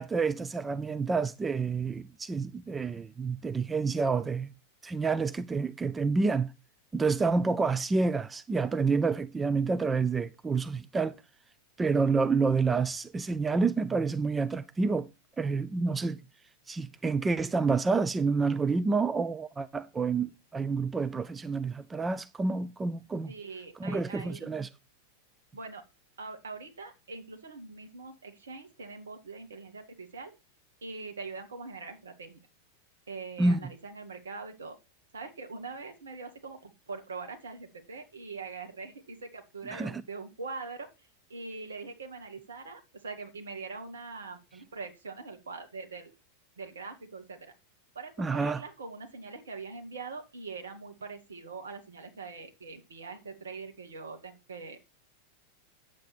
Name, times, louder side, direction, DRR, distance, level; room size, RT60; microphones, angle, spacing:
voice 1, 0.0-4.5 4.8-6.5 6.9-11.2 11.8-15.1 15.4-16.2 16.7-23.3 23.8-24.7 33.4-33.6 39.7-39.9 48.2-48.6, right 4 dB, 15° right, 0.4 m, -28 dB
voice 2, 23.3-24.5 25.5-25.8 26.2-30.3 30.8-32.4 33.1-34.8 35.1-40.9 41.3-46.1 46.6-47.5 48.0-54.8, right 4 dB, 70° right, 1.9 m, -43 dB
8.9 x 7.6 x 4.3 m
figure-of-eight pair, 90°, 0 cm